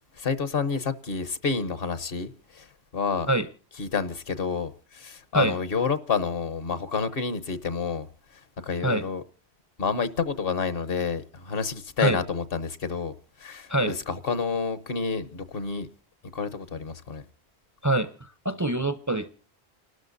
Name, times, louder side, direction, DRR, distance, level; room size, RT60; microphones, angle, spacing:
voice 1, 0.2-2.7 2.9-3.3 3.8-8.1 8.6-9.2 9.8-13.1 13.4-15.9 16.3-17.2, left 5 dB, 65° left, 1.2 m, -29 dB
voice 2, 18.4-19.3, right 2 dB, 20° right, 0.5 m, -24 dB
29.5 x 13.0 x 2.6 m
omnidirectional pair, 1.1 m